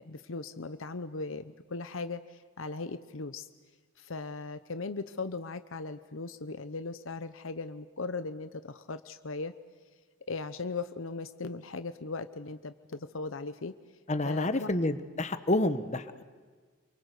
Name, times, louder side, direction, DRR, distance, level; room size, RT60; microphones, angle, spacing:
voice 1, 0.0-3.5 4.0-9.5 10.3-13.7 14.2-14.7, left 3 dB, 65° left, 11 dB, 0.9 m, -38 dB
voice 2, 14.1-16.2, left 1 dB, 35° left, 10 dB, 1.3 m, -29 dB
29.5 x 23.5 x 8.2 m, 1.5 s
head